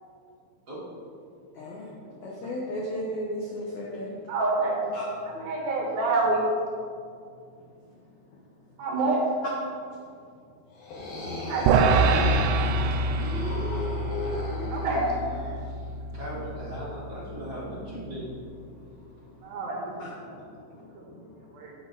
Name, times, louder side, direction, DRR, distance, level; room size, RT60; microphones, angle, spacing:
voice 1, 1.5-1.9 2.2-4.1 4.9-5.1 9.7-9.8 18.9-19.0 19.3-19.4 20.0-21.4, equal, 85° left, -4 dB, 1.6 m, -36 dB
voice 2, 4.3-4.8 5.2-6.4 8.8-9.2 11.5-12.0 14.7-15.0 19.4-19.9 20.2-20.3 20.9-21.0 21.5-21.7, right 3 dB, 65° right, -2 dB, 2.8 m, -27 dB
sound 1, 10.7-15.5, left 1 dB, 60° left, 3.9 m, -34 dB
sound 2, 11.7-18.0, right 3 dB, 85° right, 2.8 m, -26 dB
voice 3, 16.1-18.2, right 1 dB, 25° right, -8 dB, 2.4 m, -37 dB
11.5 x 8.3 x 4.1 m, 2.3 s
omnidirectional pair, 5.2 m